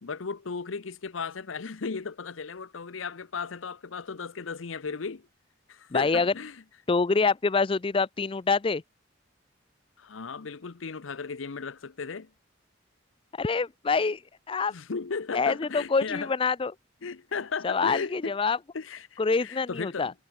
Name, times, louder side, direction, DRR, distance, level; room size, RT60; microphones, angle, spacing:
voice 1, 0.0-5.3 5.7-6.6 10.0-12.3 14.7-16.3 17.0-18.4 18.7-20.1, left 5 dB, 85° left, 0.8 m, -35 dB
voice 2, 5.9-6.3 6.9-8.8 13.3-14.2 14.5-14.7 15.3-16.7 17.6-18.6 19.2-20.1, left 4 dB, 25° left, 0.4 m, -26 dB
head